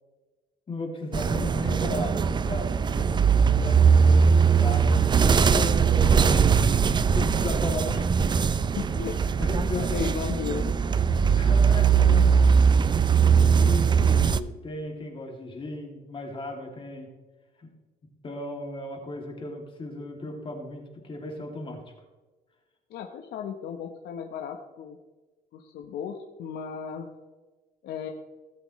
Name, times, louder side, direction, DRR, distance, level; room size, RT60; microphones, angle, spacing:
voice 1, 0.7-3.1 3.3-4.3 4.6-6.5 7.1-8.3 9.4-10.1 11.2-12.3 13.4-17.1 17.6-17.7 18.2-21.8, left 2 dB, 30° left, 1 dB, 2.6 m, -36 dB
sound 1, 1.1-14.4, right 6 dB, 25° right, 0.5 m, -21 dB
voice 2, 8.7-9.2 9.5-10.7 22.9-25.0 25.5-27.1 27.8-28.1, left 7 dB, 75° left, 3 dB, 1.1 m, -35 dB
18.0 x 7.7 x 3.2 m, 1.2 s
cardioid pair, 110°, 17 cm